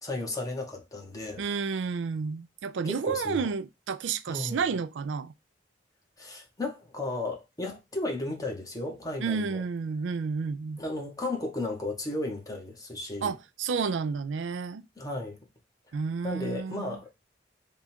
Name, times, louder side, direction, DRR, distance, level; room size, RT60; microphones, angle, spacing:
voice 1, 0.0-1.4 2.8-3.5 4.3-4.7 6.2-9.6 10.8-13.3 15.0-15.4 16.2-17.1, left 2 dB, 20° left, 1.1 m, -34 dB
voice 2, 1.4-5.3 9.2-10.8 13.2-14.8 15.9-17.0, right 5 dB, 75° right, 0.4 m, -31 dB
3.6 x 2.4 x 4.2 m
head